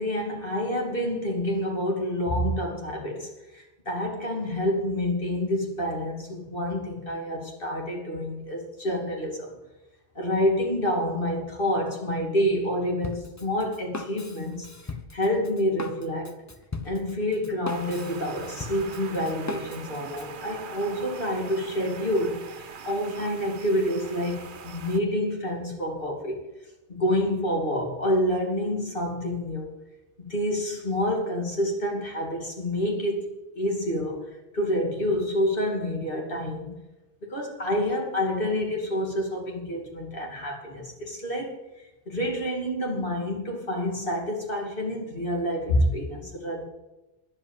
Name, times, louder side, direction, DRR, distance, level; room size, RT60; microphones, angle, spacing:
voice 1, 0.0-9.5 10.1-14.7 15.1-16.3 16.8-26.4 26.9-29.7 30.2-36.7 37.2-46.6, equal, 55° left, 0 dB, 2.9 m, -28 dB
Drum kit, 13.0-20.3, left 2 dB, 20° left, 0.7 m, -39 dB
sound 1, 17.7-25.0, right 5 dB, 50° right, 1.0 m, -42 dB
10.5 x 7.8 x 8.9 m, 1.0 s
omnidirectional pair, 1.1 m